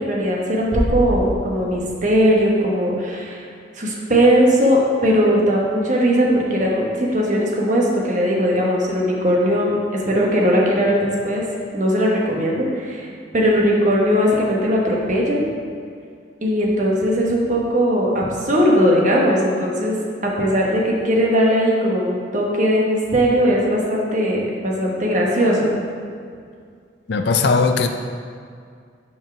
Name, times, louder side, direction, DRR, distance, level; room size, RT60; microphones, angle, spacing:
voice 1, 0.0-3.5 3.7-11.4 11.7-15.5 16.4-20.0 20.2-25.7, equal, 40° right, -2 dB, 1.1 m, -19 dB
Bass drum, 0.7-2.4, equal, 65° right, 1.2 m, -26 dB
voice 2, 27.1-27.9, left 4 dB, 60° left, 5 dB, 0.4 m, -18 dB
5.7 x 4.5 x 5.9 m, 2.2 s
head